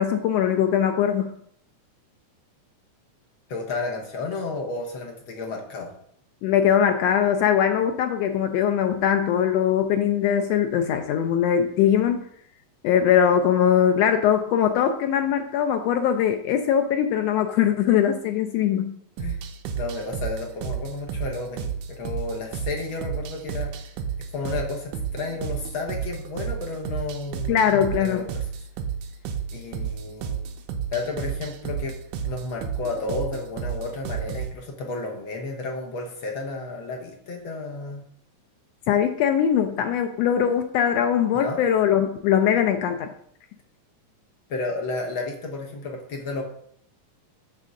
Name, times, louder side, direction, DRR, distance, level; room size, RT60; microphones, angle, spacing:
voice 1, 0.0-1.3 6.4-12.2 12.8-19.0 27.5-28.2 38.9-43.1, left 9 dB, 85° left, 6 dB, 1.4 m, -21 dB
voice 2, 3.5-5.9 19.2-19.4 19.7-23.9 24.3-28.7 29.5-30.4 30.9-32.0 32.2-38.0 41.3-41.6 44.5-46.4, left 3 dB, 60° left, 0 dB, 1.4 m, -32 dB
sound 1, 19.2-34.5, right 7 dB, 90° right, 2.2 m, -32 dB
6.7 x 3.6 x 6.3 m, 0.67 s
omnidirectional pair, 3.4 m